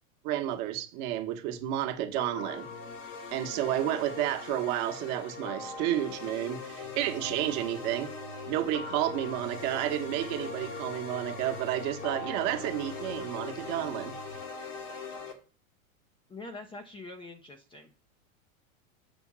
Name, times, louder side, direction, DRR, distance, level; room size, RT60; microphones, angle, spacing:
voice 1, 0.2-2.7 3.3-8.1 8.5-14.2, right 12 dB, 45° right, 1.1 m, -31 dB
sound 1, 2.2-15.3, left 4 dB, 70° left, 2.6 m, -41 dB
sound 2, 6.8-14.4, right 1 dB, 90° left, 2.6 m, -47 dB
voice 2, 16.3-17.9, left 2 dB, 15° left, 0.6 m, -44 dB
7.1 x 3.5 x 6.0 m
hypercardioid pair, 130°, 41 cm